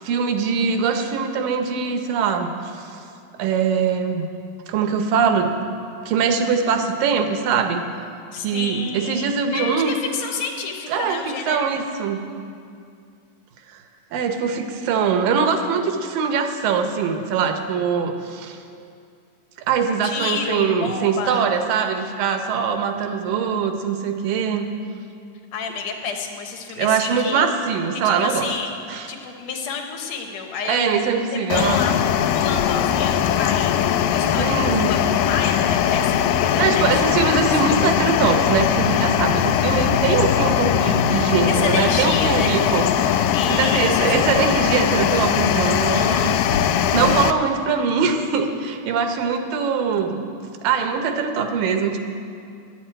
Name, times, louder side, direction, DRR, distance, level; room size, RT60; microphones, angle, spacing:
voice 1, 0.0-3.0 3.4-4.3 4.7-5.5 6.1-7.9 8.4-9.9 10.9-11.2 11.5-12.2 13.7-13.8 14.1-18.6 19.7-24.7 26.8-28.5 28.9-29.1 30.7-31.8 34.4-34.9 36.6-43.2 43.5-46.4 46.6-50.2 50.6-52.0, right 6 dB, 85° right, 6 dB, 2.6 m, -22 dB
voice 2, 8.3-11.7 20.0-21.4 25.5-27.5 27.9-28.7 29.1-37.1 37.4-37.8 41.5-43.0 43.3-44.6, left 5 dB, 65° left, 3 dB, 1.9 m, -30 dB
sound 1, 31.5-47.3, left 9 dB, 85° left, 2.2 m, -20 dB
12.0 x 7.9 x 8.7 m, 2.4 s
omnidirectional pair, 3.9 m